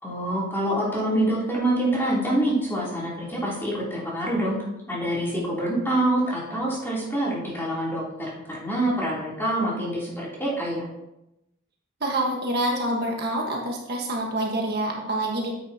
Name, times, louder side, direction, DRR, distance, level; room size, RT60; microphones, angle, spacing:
voice 1, 0.0-4.6 4.9-10.9, right 1 dB, 10° left, -7 dB, 3.2 m, -26 dB
voice 2, 12.0-15.5, right 1 dB, 55° right, 0 dB, 1.4 m, -26 dB
9.4 x 9.2 x 2.9 m, 0.89 s
head